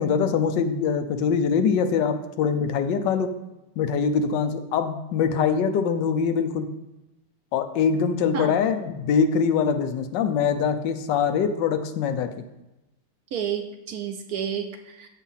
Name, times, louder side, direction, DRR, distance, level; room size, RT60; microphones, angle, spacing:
voice 1, 0.0-3.3 3.8-6.7 7.5-12.3, left 6 dB, 80° left, 8 dB, 1.3 m, -23 dB
voice 2, 13.3-15.1, right 8 dB, 70° right, 6 dB, 1.0 m, -31 dB
7.4 x 4.5 x 5.6 m, 0.97 s
omnidirectional pair, 1.9 m